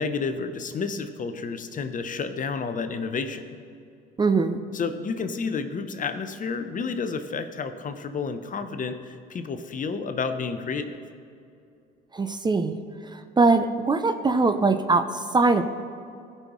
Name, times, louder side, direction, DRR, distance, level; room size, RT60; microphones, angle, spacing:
voice 1, 0.0-3.4 4.7-11.0, left 5 dB, 40° left, 9 dB, 0.8 m, -30 dB
voice 2, 4.2-4.6 12.1-15.6, right 3 dB, 20° right, 8 dB, 0.5 m, -22 dB
16.0 x 5.6 x 3.1 m, 2.5 s
supercardioid pair, 70°, 21 cm